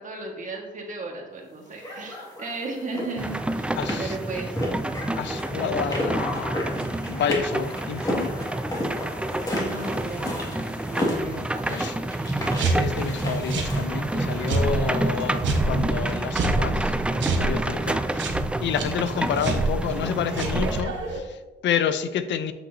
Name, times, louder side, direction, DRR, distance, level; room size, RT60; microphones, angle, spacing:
voice 1, 0.0-4.6 5.6-6.4 9.6-11.4, right 3 dB, 40° right, 0 dB, 1.6 m, -35 dB
sound 1, 1.8-15.9, left 1 dB, 20° left, 2.0 m, -33 dB
sound 2, 3.2-20.8, right 1 dB, 5° right, 0.3 m, -28 dB
voice 2, 3.8-4.2 5.2-6.5 7.1-8.3 11.7-12.0 12.6-18.3 18.6-22.5, left 8 dB, 65° left, 11 dB, 0.6 m, -29 dB
sound 3, 12.3-21.2, right 3 dB, 70° right, 1.2 m, -29 dB
8.1 x 5.8 x 2.7 m, 1.1 s
cardioid pair, 90°, 20 cm